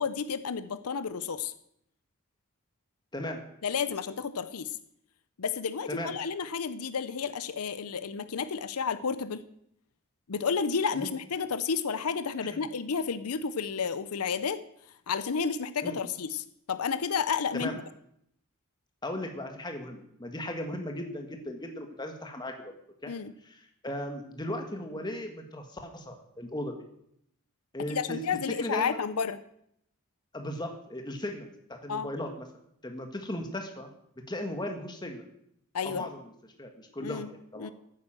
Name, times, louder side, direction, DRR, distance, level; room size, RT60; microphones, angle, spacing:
voice 1, 0.0-1.5 3.6-4.7 5.4-9.4 10.3-14.6 15.1-17.8 23.1-23.3 27.9-29.4 31.9-32.1 35.7-36.0 37.0-37.3 37.6-37.7, left 6 dB, 85° left, 13 dB, 0.6 m, -31 dB
voice 2, 19.0-22.8 23.0-23.1 23.4-26.8 27.7-28.2 28.5-29.0 30.3-32.5 32.8-33.9 34.3-35.2 35.8-36.3 36.6-37.7, left 1 dB, 20° left, 4 dB, 1.6 m, -37 dB
9.8 x 9.2 x 7.5 m, 0.74 s
head